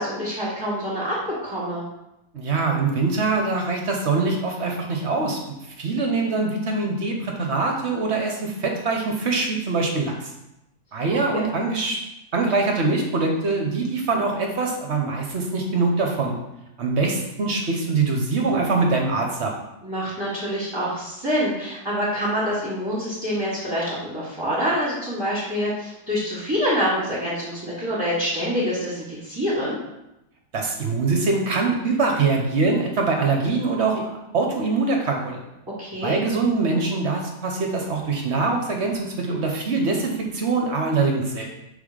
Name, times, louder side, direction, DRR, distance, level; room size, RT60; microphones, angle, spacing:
voice 1, 0.0-1.8 11.3-11.4 19.8-29.8 35.8-36.2, equal, 15° right, -8 dB, 1.6 m, -26 dB
voice 2, 2.3-5.4 5.8-10.3 10.9-12.0 12.3-16.4 16.8-19.5 30.5-35.4 36.0-41.5, right 3 dB, 50° right, 2 dB, 1.0 m, -23 dB
5.5 x 3.8 x 5.0 m, 0.89 s
omnidirectional pair, 1.7 m